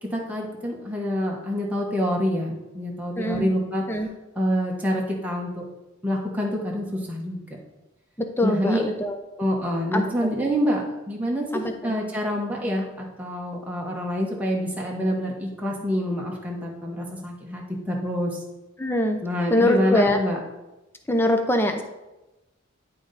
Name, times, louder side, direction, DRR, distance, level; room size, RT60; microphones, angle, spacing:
voice 1, 0.0-3.8 4.3-5.6 6.0-7.4 8.4-8.9 9.4-18.4 19.2-20.4, equal, 5° right, -3 dB, 1.0 m, -26 dB
voice 2, 3.2-3.5 3.9-4.1 8.2-9.2 9.9-10.3 11.5-11.9 18.8-19.2 19.5-20.2 21.1-21.8, left 1 dB, 10° left, 5 dB, 0.6 m, -23 dB
11.0 x 3.8 x 4.1 m, 1.0 s
head